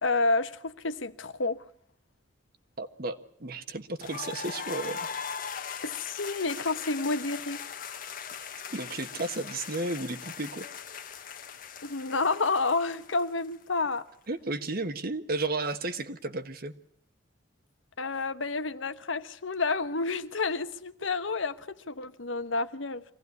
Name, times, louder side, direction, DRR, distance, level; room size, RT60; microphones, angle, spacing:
voice 1, 0.0-1.6 5.8-7.6 11.8-14.0 18.0-23.0, left 3 dB, 85° left, 1.2 m, -30 dB
voice 2, 2.8-5.0 8.7-10.7 14.3-16.7, right 2 dB, 50° right, 1.4 m, -33 dB
sound 1, 4.0-13.8, left 7 dB, 45° left, 1.2 m, -40 dB
24.5 x 17.5 x 9.6 m
head